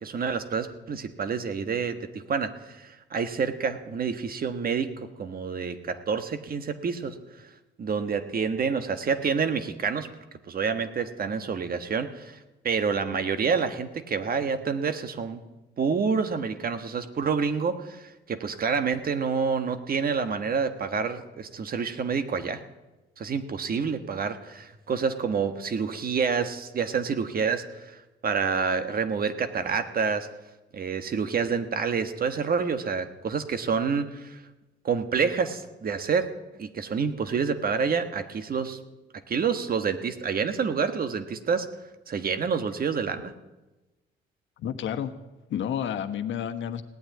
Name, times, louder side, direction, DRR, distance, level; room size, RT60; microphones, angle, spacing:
voice 1, 0.0-7.5 7.8-10.1 10.5-15.4 15.8-22.6 23.2-30.3 30.7-34.4 34.8-36.3 36.6-38.8 39.3-41.7 42.1-43.3, right 5 dB, 50° right, 9 dB, 1.4 m, -28 dB
voice 2, 44.6-45.1 45.5-46.8, left 9 dB, 75° left, 8 dB, 1.2 m, -30 dB
17.5 x 8.8 x 9.4 m, 1.1 s
cardioid pair, 90°, 20 cm